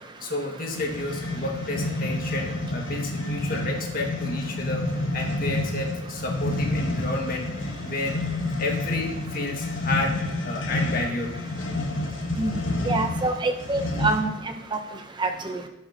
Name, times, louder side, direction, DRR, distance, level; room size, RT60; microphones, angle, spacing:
voice 1, 0.2-4.8 5.1-8.2 8.6-10.2 10.4-11.3, left 2 dB, 50° left, 0 dB, 1.6 m, -31 dB
sound 1, 0.7-14.4, left 2 dB, 70° left, 1.1 m, -29 dB
voice 2, 12.9-14.3 15.2-15.6, right 2 dB, 25° right, 5 dB, 0.5 m, -25 dB
15.0 x 5.8 x 2.7 m, 0.91 s
head